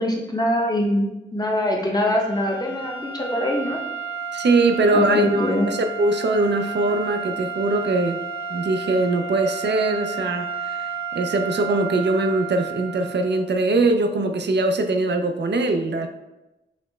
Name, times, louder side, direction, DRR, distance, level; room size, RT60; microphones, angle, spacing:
voice 1, 0.0-3.8 4.9-5.7, left 1 dB, 20° left, -1 dB, 0.8 m, -23 dB
sound 1, 2.0-13.5, right 5 dB, 80° left, 1.2 m, -32 dB
voice 2, 4.3-8.2 8.5-10.9 11.1-16.1, right 2 dB, 60° right, 6 dB, 0.4 m, -22 dB
5.0 x 2.1 x 3.2 m, 1.0 s
wide cardioid pair, 65°, 20 cm